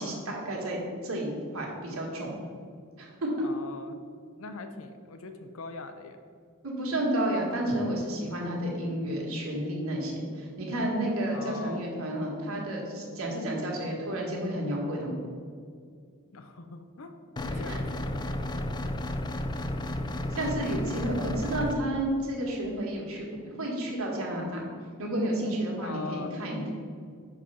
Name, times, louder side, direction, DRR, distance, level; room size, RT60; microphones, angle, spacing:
voice 1, 0.0-2.3 3.0-3.1 6.6-15.2 17.4-17.6 20.3-23.3 23.6-24.7 25.0-26.7, right 1 dB, 70° right, -2 dB, 1.7 m, -31 dB
voice 2, 3.4-4.0 4.4-6.2 11.3-11.9 16.3-17.2 17.5-18.0 25.8-26.4, left 4 dB, 65° left, 7 dB, 0.6 m, -42 dB
sound 1, 17.4-21.8, left 1 dB, 20° left, 0.3 m, -32 dB
6.2 x 4.7 x 5.5 m, 2.2 s
head